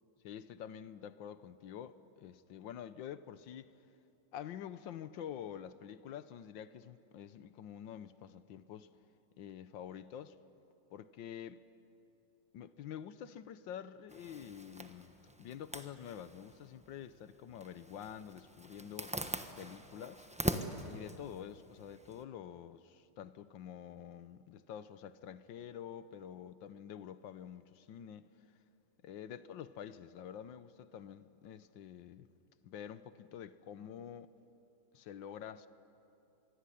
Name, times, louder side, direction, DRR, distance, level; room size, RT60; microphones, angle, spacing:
voice 1, 0.2-3.7 4.3-8.9 9.4-10.4 10.9-11.6 12.5-15.1 15.4-19.2 19.6-20.3 20.8-28.3 29.0-32.3 32.6-34.3 34.9-35.7, left 9 dB, 65° left, 1.4 m, -47 dB
Zipper (clothing), 14.1-22.2, right 1 dB, 5° right, 0.5 m, -43 dB
26.0 x 22.0 x 10.0 m
omnidirectional pair, 2.4 m